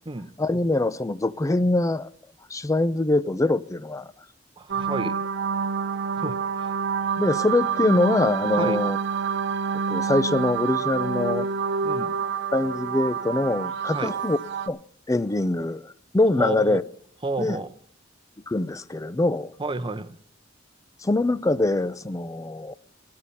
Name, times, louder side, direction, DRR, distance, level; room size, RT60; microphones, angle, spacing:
voice 1, 0.4-2.1 2.5-4.1 7.2-9.0 9.9-11.5 12.5-14.4 14.7-14.8 15.1-16.8 17.4-17.6 18.5-19.5 21.0-22.8, left 2 dB, 15° left, 0.5 m, -23 dB
voice 2, 4.6-5.1 6.2-6.8 8.6-8.8 11.8-12.2 13.9-14.1 16.4-16.8 17.2-17.7 19.6-20.1, right 2 dB, 25° right, 0.8 m, -31 dB
sound 1, 4.7-14.7, right 6 dB, 65° right, 0.8 m, -27 dB
16.0 x 11.5 x 4.2 m
head